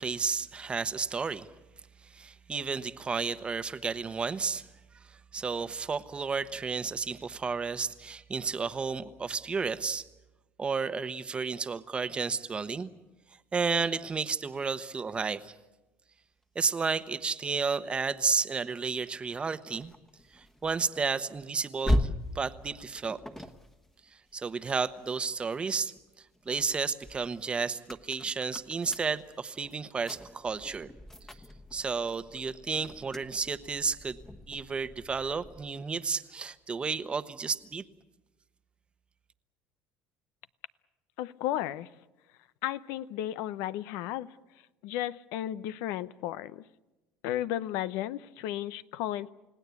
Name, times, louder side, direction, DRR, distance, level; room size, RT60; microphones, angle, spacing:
voice 1, 0.0-1.5 2.1-4.6 5.1-10.0 10.6-12.9 13.5-15.5 16.5-19.9 20.3-23.2 24.3-25.9 26.5-30.9 31.7-34.2 34.5-37.8, right 5 dB, 20° right, 12 dB, 1.0 m, -32 dB
sound 1, 19.0-25.5 26.0-35.8, left 1 dB, 10° left, 1.3 m, -38 dB
voice 2, 41.2-41.9 42.6-44.3 44.8-46.6 47.2-49.3, left 13 dB, 80° left, 15 dB, 0.7 m, -34 dB
29.5 x 17.0 x 8.4 m, 1.1 s
cardioid pair, 125°, 5 cm